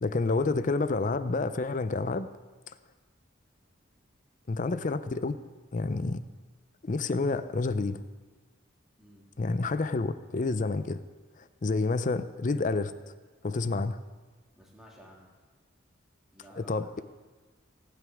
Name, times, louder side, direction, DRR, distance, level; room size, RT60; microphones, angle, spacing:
voice 1, 0.0-2.3 4.5-5.4 5.7-6.2 6.8-8.0 9.4-11.0 11.6-12.9 13.4-14.0 16.6-17.0, left 3 dB, 40° left, 13 dB, 0.5 m, -29 dB
voice 2, 9.0-9.3 14.6-15.3 16.3-17.0, equal, ahead, -4 dB, 2.2 m, -53 dB
18.0 x 9.3 x 3.5 m, 1.3 s
head